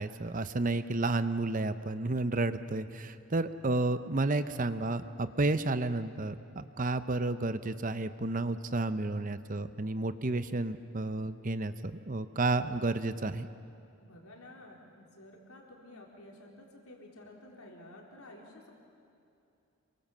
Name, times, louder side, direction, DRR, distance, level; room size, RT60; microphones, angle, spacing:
voice 1, 0.0-13.5, right 2 dB, 35° right, 12 dB, 0.7 m, -31 dB
voice 2, 14.0-18.7, left 1 dB, 75° left, 0 dB, 4.2 m, -52 dB
28.5 x 24.0 x 7.3 m, 2.6 s
head